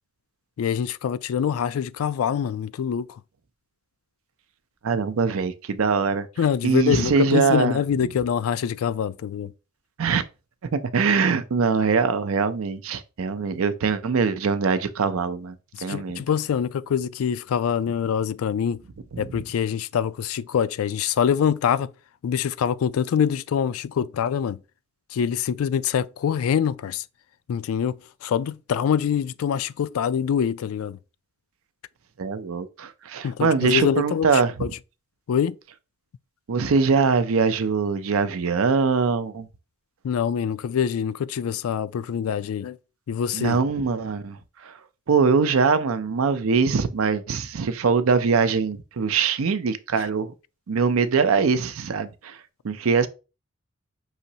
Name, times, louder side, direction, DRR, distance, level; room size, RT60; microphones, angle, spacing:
voice 1, 0.6-3.2 6.4-9.5 15.7-18.8 19.2-21.9 22.2-24.6 25.1-27.1 27.5-31.0 33.2-34.7 35.3-35.6 40.0-42.8 43.1-43.6, left 8 dB, 85° left, 0.3 m, -25 dB
voice 2, 4.8-6.3 6.6-7.8 10.0-10.2 10.7-15.6 15.8-16.2 19.1-19.2 32.2-34.5 36.5-39.5 43.3-44.8 45.1-50.3 50.7-52.4 52.6-53.1, right 5 dB, 80° right, 0.5 m, -22 dB
5.6 x 3.0 x 2.7 m
head